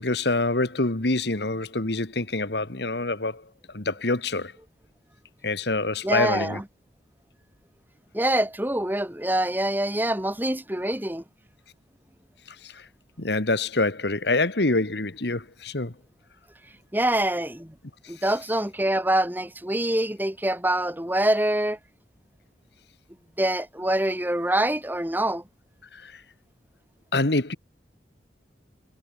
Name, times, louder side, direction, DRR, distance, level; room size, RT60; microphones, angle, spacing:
voice 1, 0.0-3.4 3.7-4.5 5.4-6.6 12.6-12.9 13.2-15.9 25.9-26.2 27.1-27.6, left 2 dB, 65° left, 1.9 m, -26 dB
voice 2, 6.0-6.6 8.1-11.2 16.9-17.7 18.1-21.8 23.4-25.4, right 1 dB, 10° right, 2.7 m, -25 dB
head